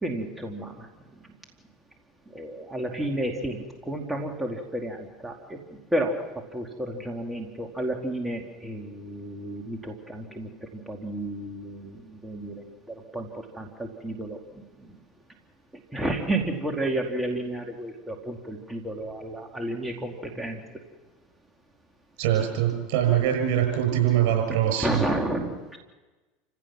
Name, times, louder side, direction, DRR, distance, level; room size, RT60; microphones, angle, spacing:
voice 1, 0.0-0.9 2.3-5.6 5.9-6.1 6.5-10.5 10.9-13.3 13.5-14.4 14.8-14.9 15.9-20.6 24.2-24.3 24.8-25.8, right 1 dB, 10° right, 1 dB, 2.6 m, -31 dB
voice 2, 22.2-25.0, right 10 dB, 70° right, 4 dB, 7.4 m, -23 dB
29.0 x 16.0 x 6.1 m, 1.2 s
hypercardioid pair, 90°, 0 cm